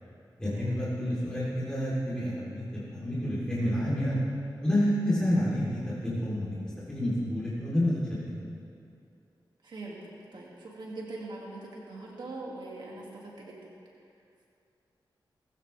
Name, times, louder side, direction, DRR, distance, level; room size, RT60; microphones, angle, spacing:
voice 1, 0.4-4.2 4.6-6.6 6.9-8.0, left 1 dB, 10° left, -9 dB, 3.6 m, -29 dB
voice 2, 9.6-13.6, right 2 dB, 75° right, -3 dB, 2.4 m, -42 dB
20.5 x 15.0 x 3.5 m, 2.5 s
wide cardioid pair, 120°, 8 cm